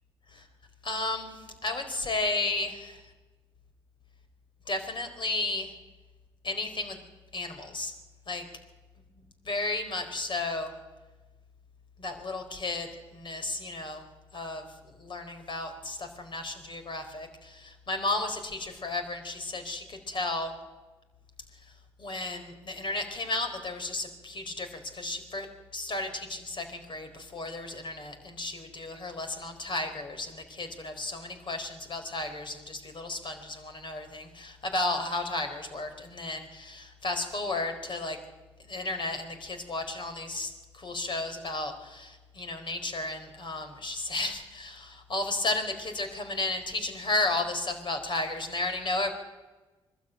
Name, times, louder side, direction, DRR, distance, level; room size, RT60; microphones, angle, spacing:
voice 1, 0.8-3.0 4.7-5.7 6.4-7.0 7.3-7.9 8.3-8.5 9.4-10.7 12.0-14.0 14.3-20.6 21.6-21.7 22.0-25.5 25.7-38.2 38.6-49.1, left 2 dB, 45° left, 7 dB, 4.2 m, -33 dB
24.5 x 13.0 x 9.2 m, 1.2 s
supercardioid pair, 55°, 11 cm